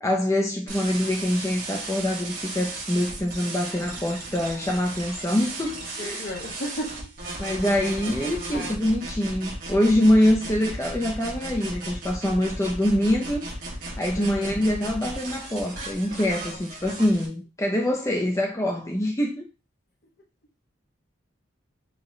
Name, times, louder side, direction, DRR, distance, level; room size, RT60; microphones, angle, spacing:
voice 1, 0.0-6.3 7.4-13.4 14.0-19.4, left 1 dB, 15° left, 0.6 m, -24 dB
sound 1, 0.7-17.3, right 2 dB, 45° right, 1.2 m, -36 dB
voice 2, 6.0-7.1 8.5-8.8 14.1-14.5 16.5-16.6, equal, 50° left, 0.8 m, -35 dB
3.9 x 2.9 x 3.1 m
head